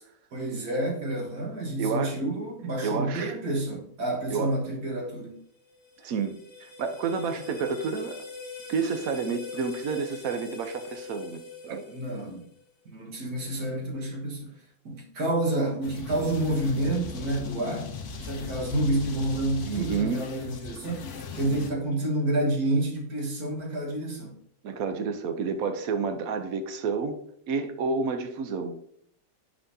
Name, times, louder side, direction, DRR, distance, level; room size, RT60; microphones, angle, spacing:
voice 1, 0.3-5.4 11.9-12.5 12.9-14.6 14.9-17.9 18.2-24.4, right 1 dB, 50° right, 1.9 m, -29 dB
voice 2, 1.8-2.2 2.8-3.4 4.3-4.5 6.0-8.2 8.7-11.9 19.7-20.3 24.6-27.2 27.5-28.8, right 5 dB, 65° right, 0.8 m, -30 dB
sound 1, 5.6-12.6, left 4 dB, 55° left, 1.9 m, -43 dB
sound 2, 15.8-21.7, left 5 dB, 85° left, 0.6 m, -38 dB
8.2 x 5.8 x 2.7 m
omnidirectional pair, 2.3 m